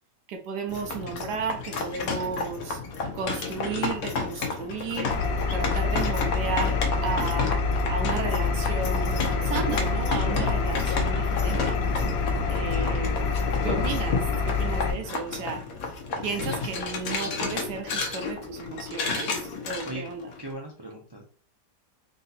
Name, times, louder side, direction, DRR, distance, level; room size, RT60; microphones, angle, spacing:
voice 1, 0.3-2.8 3.1-5.2 5.5-7.6 7.9-11.8 12.5-13.4 13.6-15.6 16.2-20.3, right 5 dB, 80° right, 5 dB, 1.2 m, -34 dB
sound 1, 0.7-20.5, left 4 dB, 60° left, 1.2 m, -32 dB
Engine, 5.1-14.9, left 4 dB, 80° left, 1.3 m, -26 dB
voice 2, 12.4-13.0 19.8-20.0 20.4-21.2, right 1 dB, 40° right, -1 dB, 0.3 m, -39 dB
3.8 x 2.7 x 4.0 m, 0.42 s
omnidirectional pair, 1.8 m